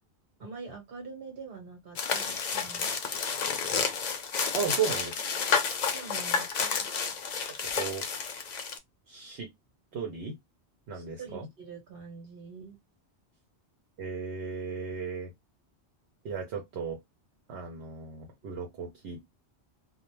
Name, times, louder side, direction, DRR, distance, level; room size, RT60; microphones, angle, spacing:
voice 1, 0.4-2.9 5.9-6.9 10.9-12.8, right 4 dB, 60° right, 1.2 m, -45 dB
sound 1, 2.0-8.8, left 6 dB, 55° left, 0.5 m, -30 dB
voice 2, 4.5-5.2 7.7-8.0 9.1-9.5 9.9-10.4 10.9-11.5 14.0-15.3 16.2-17.0 17.5-19.2, right 6 dB, 75° right, 0.9 m, -35 dB
2.4 x 2.1 x 3.0 m
omnidirectional pair, 1.1 m